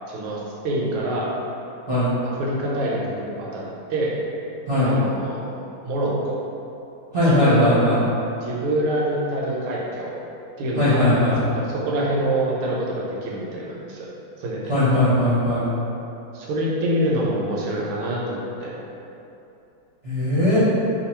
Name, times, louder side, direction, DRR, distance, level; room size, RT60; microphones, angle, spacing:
voice 1, 0.1-1.3 2.2-3.6 3.9-4.1 4.8-5.6 5.8-6.4 7.2-7.7 8.4-10.1 10.6-14.1 14.4-14.7 16.3-18.7, right 1 dB, 80° right, -4 dB, 1.6 m, -26 dB
voice 2, 7.1-8.0 10.8-11.4 14.7-15.7 20.0-20.6, left 1 dB, 45° right, -13 dB, 0.8 m, -19 dB
3.6 x 2.3 x 4.2 m, 2.9 s
omnidirectional pair, 2.3 m